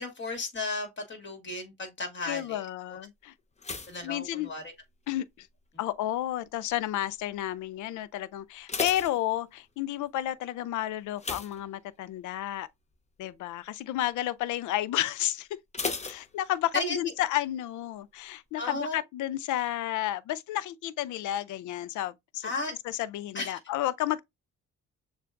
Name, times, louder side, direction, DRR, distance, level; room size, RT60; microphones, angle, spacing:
voice 1, 0.0-3.0 3.9-4.6 16.7-17.1 18.6-19.0 22.4-22.7 23.3-23.6, left 2 dB, 40° left, 2.0 m, -34 dB
voice 2, 2.3-3.3 4.0-4.5 5.1-5.5 5.8-12.7 13.2-15.5 16.0-22.5 22.9-24.2, left 13 dB, 80° left, 0.5 m, -31 dB
sound 1, 3.6-5.1 5.3-5.8 6.4-6.8 7.1-7.2 7.6-7.7 8.3-9.9 11.2-12.3 12.7-12.9 13.3-13.4 15.7-16.9 17.2-17.3, left 4 dB, 20° left, 0.7 m, -36 dB
6.7 x 2.4 x 2.4 m
cardioid pair, 90°, 30 cm